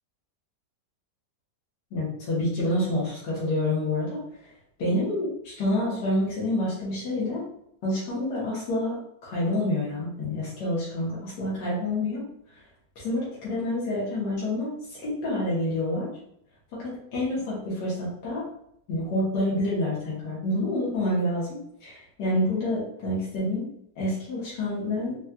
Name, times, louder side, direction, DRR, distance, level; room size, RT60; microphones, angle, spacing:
voice 1, 1.9-4.2 4.8-7.4 7.8-9.0 9.2-12.2 13.0-16.1 16.7-18.4 18.9-23.6 24.0-25.2, left 1 dB, 75° left, -7 dB, 1.7 m, -28 dB
4.1 x 2.3 x 2.3 m, 0.70 s
omnidirectional pair, 1.9 m